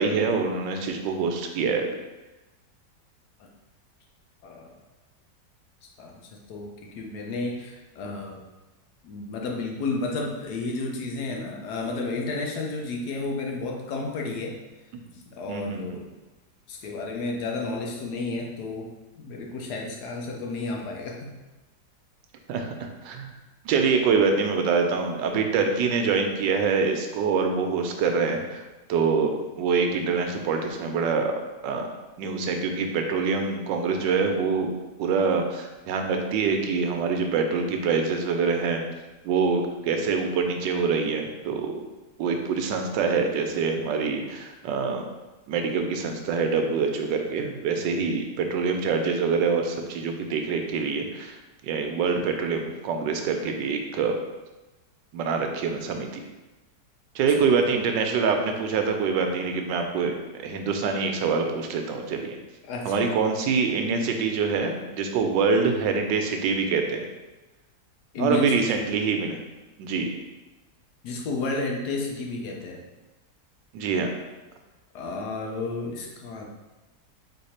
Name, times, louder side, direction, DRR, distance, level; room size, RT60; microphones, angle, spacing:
voice 1, 0.0-1.9 14.9-15.0 15.5-16.0 22.5-23.3 23.6-28.6 28.9-29.3 29.6-31.3 31.6-31.8 32.2-34.7 35.0-38.8 39.2-41.7 42.2-45.0 45.5-51.4 51.6-54.1 55.1-56.2 57.1-60.1 60.4-62.4 62.8-67.1 68.2-69.4 69.8-70.1 73.7-74.1, right 5 dB, 85° right, 4 dB, 1.3 m, -25 dB
voice 2, 4.4-4.8 5.8-8.4 9.0-14.6 15.3-16.1 16.7-18.9 19.2-21.3 57.3-57.6 62.6-62.9 68.1-68.8 71.0-72.8 74.9-76.5, left 3 dB, 70° left, 0 dB, 1.2 m, -32 dB
3.7 x 3.3 x 4.2 m, 1.1 s
omnidirectional pair, 1.9 m